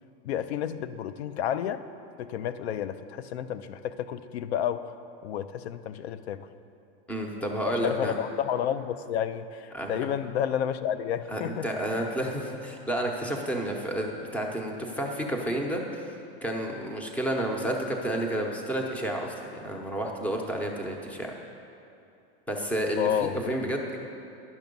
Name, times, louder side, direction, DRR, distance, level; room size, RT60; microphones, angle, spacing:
voice 1, 0.2-1.8 2.2-4.9 5.2-6.5 7.8-11.7 23.0-23.7, left 9 dB, 85° left, 13 dB, 0.5 m, -31 dB
voice 2, 7.1-8.1 9.7-10.1 11.3-16.1 16.4-21.3 22.5-23.1 23.3-24.0, right 1 dB, 5° left, 1 dB, 0.7 m, -30 dB
11.0 x 6.0 x 5.3 m, 2.6 s
supercardioid pair, 145°, 31 cm